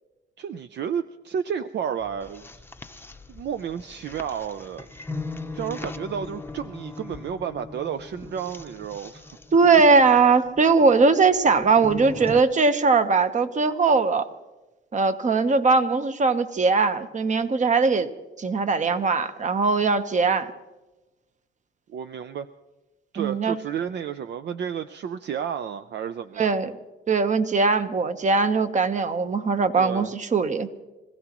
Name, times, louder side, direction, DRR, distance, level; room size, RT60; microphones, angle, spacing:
voice 1, 0.4-2.6 3.3-4.9 5.5-9.4 21.9-22.5 23.1-26.6 29.8-30.1, right 8 dB, 60° right, 10 dB, 0.6 m, -31 dB
sound 1, 2.0-12.4, left 3 dB, 10° left, 0.7 m, -39 dB
voice 2, 9.5-14.3 14.9-18.1 18.4-20.5 23.2-23.6 26.4-26.7 27.1-30.7, right 4 dB, 40° right, 10 dB, 1.1 m, -20 dB
25.5 x 16.0 x 3.0 m, 1.1 s
cardioid pair, 90°, 20 cm